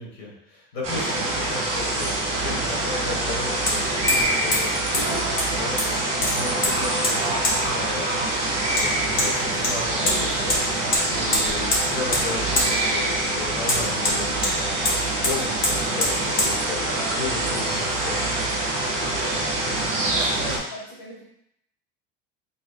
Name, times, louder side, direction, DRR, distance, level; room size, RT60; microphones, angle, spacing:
voice 1, 0.0-18.2, left 3 dB, 90° left, -3 dB, 1.7 m, -35 dB
sound 1, 0.8-20.6, right 2 dB, 20° right, 1.7 m, -25 dB
Hammer, 1.7-1.8 3.7-3.8 4.1-4.3 4.5-4.6 4.9-5.0 5.4-5.9 6.2-6.7 7.0-7.1 7.4-7.6 8.8-8.9 9.2-9.3 9.6-10.2 10.5-10.6 10.9-11.0 11.3-11.8 12.1-12.3 12.6-12.7 13.7-14.5 14.9-15.0 15.2-15.3 15.6-15.7 16.0-16.1 16.4-16.5, left 1 dB, 40° left, 1.5 m, -23 dB
voice 2, 20.1-21.2, left 1 dB, 60° left, -6 dB, 1.4 m, -38 dB
5.4 x 3.4 x 2.4 m, 0.77 s
cardioid pair, 160°, 30 cm